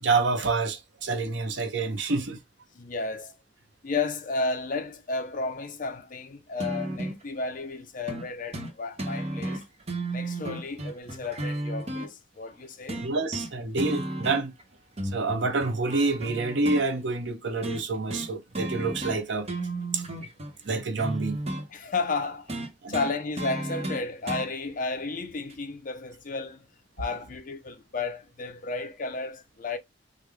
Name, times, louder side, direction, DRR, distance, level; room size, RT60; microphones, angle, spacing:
voice 1, 0.0-2.4 13.0-14.5 15.1-19.5 19.9-20.3 20.6-21.4 22.8-22.9, right 3 dB, 75° right, 0.8 m, -27 dB
voice 2, 2.7-3.3 3.8-9.6 10.1-13.1 21.7-22.6 22.9-26.7 27.0-29.8, left 3 dB, 50° left, 0.6 m, -33 dB
sound 1, 6.6-7.2 8.1-8.3 8.5-8.7 9.0-12.1 12.9-13.5 13.8-14.6 15.0-16.8 17.6-17.8 18.1-18.3 18.5-19.2 19.4-21.7 22.5-24.5 25.5-25.6, right 1 dB, 35° right, 0.9 m, -33 dB
3.7 x 2.1 x 3.1 m
head